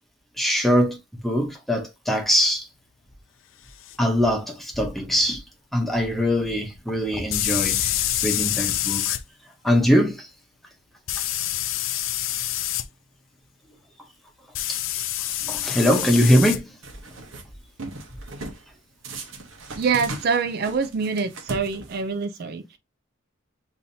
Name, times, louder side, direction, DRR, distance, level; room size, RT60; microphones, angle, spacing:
voice 1, 0.4-2.7 4.0-5.4 5.7-9.2 9.6-10.3 14.7-14.8 15.5-16.7, equal, ahead, 0.8 m, -22 dB
sound 1, 3.9-4.0 7.3-9.2 11.1-12.9 14.6-16.6, left 13 dB, 75° left, 0.4 m, -26 dB
sound 2, 16.8-17.4 17.8-18.6 19.0-22.2, right 2 dB, 80° right, 1.0 m, -38 dB
voice 2, 19.8-22.8, right 5 dB, 50° right, 0.4 m, -25 dB
7.0 x 2.7 x 2.7 m
head